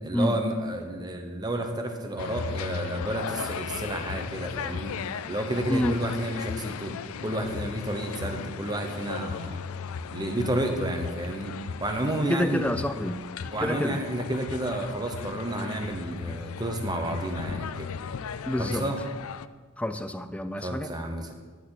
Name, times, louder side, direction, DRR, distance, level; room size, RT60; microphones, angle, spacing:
voice 1, 0.0-5.0 5.3-6.9 7.2-9.6 10.1-11.5 11.8-12.6 13.5-17.9 18.6-19.0 20.6-21.3, right 1 dB, 20° right, 4 dB, 1.0 m, -31 dB
sound 1, 2.2-19.5, left 6 dB, 80° left, 0.4 m, -36 dB
voice 2, 5.7-6.0 12.3-13.2 13.6-14.1 18.5-18.9 19.8-20.9, left 1 dB, 5° left, 10 dB, 0.4 m, -28 dB
10.5 x 10.0 x 4.1 m, 1.5 s
head